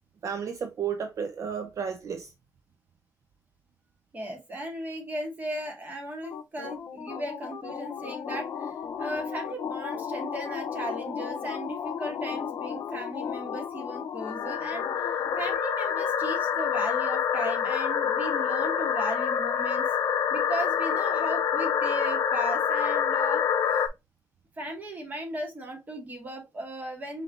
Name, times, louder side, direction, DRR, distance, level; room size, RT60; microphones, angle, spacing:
voice 1, 0.2-2.3, right 7 dB, 55° right, 0.6 m, -32 dB
voice 2, 4.1-19.9 20.3-23.4 23.7-23.8 24.6-27.2, right 1 dB, 25° right, 2.1 m, -37 dB
sound 1, 6.2-23.9, left 7 dB, 80° left, 0.7 m, -28 dB
5.8 x 3.4 x 2.4 m
wide cardioid pair, 135°, 6 cm